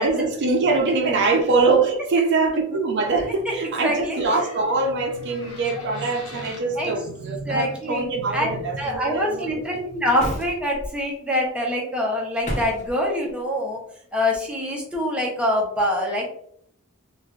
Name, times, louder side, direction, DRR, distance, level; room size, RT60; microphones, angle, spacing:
voice 1, 0.0-9.5, right 3 dB, 55° right, 0.4 m, -23 dB
voice 2, 3.8-4.2 6.8-6.9 7.5-8.1 8.3-8.5 8.8-13.8 14.1-16.3, left 1 dB, 5° right, 0.7 m, -24 dB
sound 1, 4.1-6.7 8.8-9.0, left 2 dB, 85° left, 0.8 m, -42 dB
sound 2, 10.2-10.9 12.4-12.9, equal, 35° left, 0.6 m, -30 dB
3.2 x 2.4 x 2.3 m
head